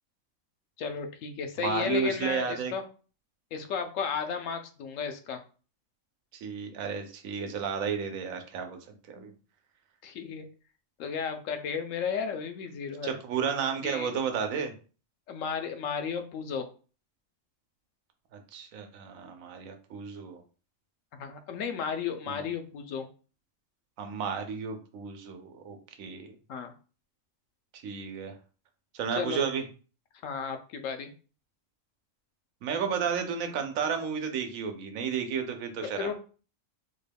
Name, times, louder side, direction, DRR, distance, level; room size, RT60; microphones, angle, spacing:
voice 1, 0.8-2.8 3.5-5.4 9.2-9.3 10.0-10.4 11.0-13.1 13.8-14.1 15.3-16.7 21.2-23.1 26.5-26.7 29.1-29.5 30.2-31.1 35.8-36.2, left 6 dB, 75° left, 7 dB, 0.9 m, -34 dB
voice 2, 1.6-2.7 6.3-8.8 9.1-9.3 13.0-14.7 18.3-20.4 22.3-22.4 24.0-26.3 27.7-28.3 28.9-29.6 32.6-36.1, right 6 dB, 85° right, 6 dB, 1.1 m, -32 dB
3.7 x 2.2 x 3.3 m, 0.37 s
omnidirectional pair, 1.4 m